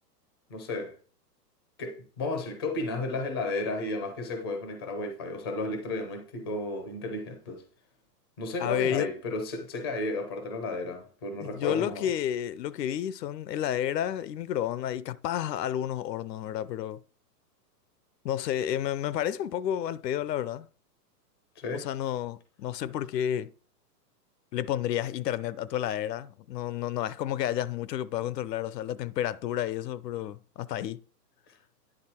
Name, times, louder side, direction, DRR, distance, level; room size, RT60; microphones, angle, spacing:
voice 1, 0.5-0.9 1.8-7.6 8.4-12.1 21.6-21.8, left 2 dB, 15° left, 0.4 m, -33 dB
voice 2, 8.6-9.1 11.4-17.0 18.2-20.7 21.7-23.5 24.5-31.0, left 11 dB, 80° left, 0.6 m, -31 dB
9.9 x 3.9 x 4.3 m
hypercardioid pair, 160°, 49 cm